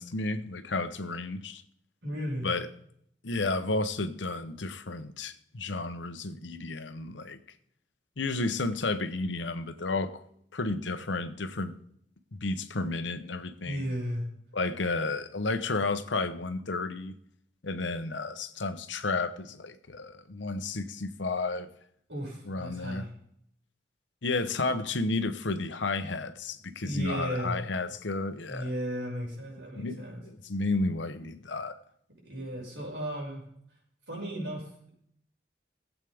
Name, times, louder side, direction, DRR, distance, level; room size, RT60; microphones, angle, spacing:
voice 1, 0.0-1.6 2.4-2.7 3.2-7.4 8.2-10.2 10.5-11.7 12.3-13.8 14.5-17.1 17.6-21.7 22.5-23.1 24.2-28.7 29.7-30.0 30.4-31.8, left 3 dB, 85° left, 1.0 m, -32 dB
voice 2, 2.0-2.5 13.6-14.3 22.1-23.1 24.6-24.7 26.8-27.6 28.5-30.2 32.2-33.4 34.1-34.9, equal, 80° right, 6.0 m, -35 dB
20.0 x 8.3 x 3.6 m
head